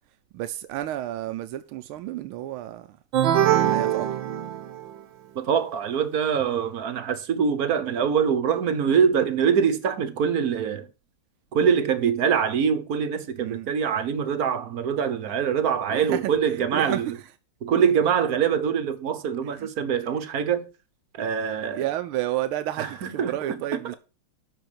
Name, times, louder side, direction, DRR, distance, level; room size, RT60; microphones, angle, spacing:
voice 1, 0.3-3.0 3.6-4.1 13.4-13.7 15.9-16.3 16.6-17.0 19.6-19.7 21.7-24.0, right 13 dB, 90° right, 1.5 m, -31 dB
sound 1, 3.1-5.0, right 11 dB, 70° right, 1.6 m, -22 dB
voice 2, 5.3-10.9 11.5-17.2 17.6-20.7 21.1-21.9 22.8-23.9, right 7 dB, 55° right, 1.3 m, -24 dB
12.5 x 4.5 x 6.8 m
omnidirectional pair, 2.3 m